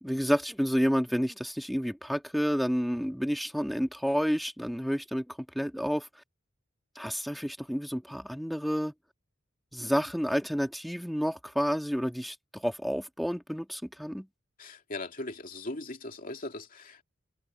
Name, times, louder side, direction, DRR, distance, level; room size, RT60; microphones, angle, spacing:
voice 1, 0.0-6.1 7.0-8.9 9.7-14.3, equal, ahead, 1.9 m, -30 dB
voice 2, 14.6-17.0, left 2 dB, 40° left, 2.5 m, -39 dB
head